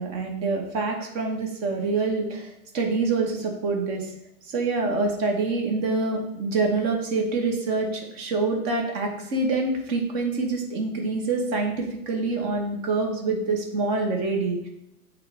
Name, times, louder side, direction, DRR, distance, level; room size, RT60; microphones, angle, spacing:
voice 1, 0.0-4.1 4.5-14.7, right 3 dB, 30° right, 2 dB, 1.2 m, -26 dB
7.8 x 3.8 x 3.4 m, 0.82 s
hypercardioid pair, 150°, 47 cm